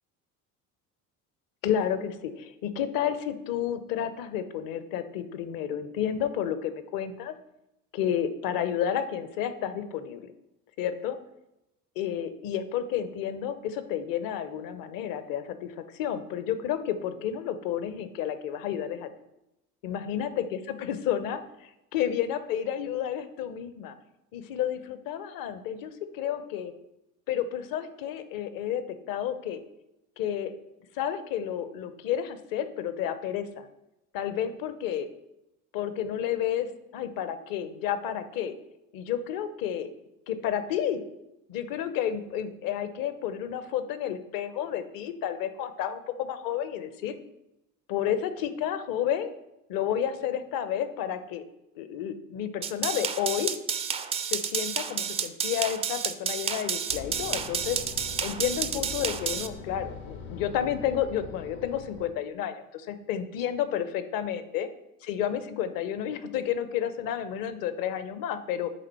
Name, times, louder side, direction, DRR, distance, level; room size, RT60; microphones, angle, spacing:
voice 1, 1.6-7.3 7.9-10.3 10.8-11.2 12.0-19.1 19.8-23.9 24.3-26.7 27.3-28.8 29.1-29.6 30.2-30.5 30.9-33.6 34.1-35.1 35.7-38.5 38.9-39.9 40.3-41.0 41.5-47.2 47.9-49.3 49.7-51.4 51.7-53.5 54.3-57.8 58.2-64.7 65.1-68.7, left 9 dB, 50° left, 11 dB, 0.9 m, -31 dB
sound 1, 52.6-59.5, right 7 dB, 15° right, 0.4 m, -30 dB
sound 2, 56.9-62.1, left 5 dB, 65° left, 1.3 m, -42 dB
10.0 x 3.8 x 4.4 m, 0.90 s
figure-of-eight pair, 60°, 45 cm